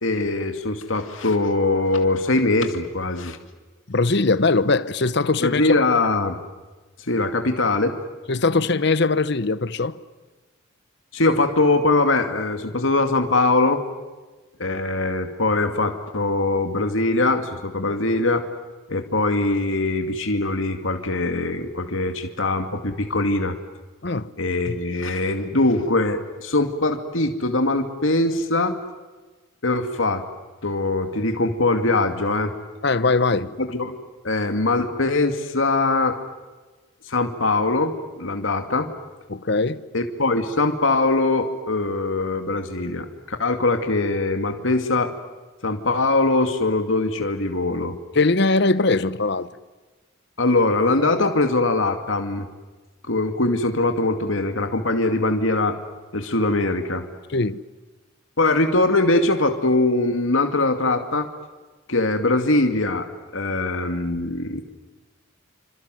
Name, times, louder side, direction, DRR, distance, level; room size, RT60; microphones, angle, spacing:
voice 1, 0.0-3.4 5.4-6.4 7.1-8.0 11.1-13.8 14.6-18.5 18.9-23.6 24.4-28.7 29.6-30.2 30.6-32.5 33.6-34.0 34.2-36.2 37.1-39.0 39.9-45.1 45.6-48.0 50.4-52.5 53.1-55.8 56.1-57.1 58.4-61.3 61.9-63.1 63.3-64.6, left 2 dB, 80° left, 2.4 m, -22 dB
voice 2, 3.9-5.6 8.3-10.0 24.0-24.3 24.7-24.8 32.8-33.5 39.3-39.8 48.1-49.5 57.3-57.6, left 3 dB, 60° left, 1.0 m, -21 dB
27.5 x 26.5 x 7.8 m
head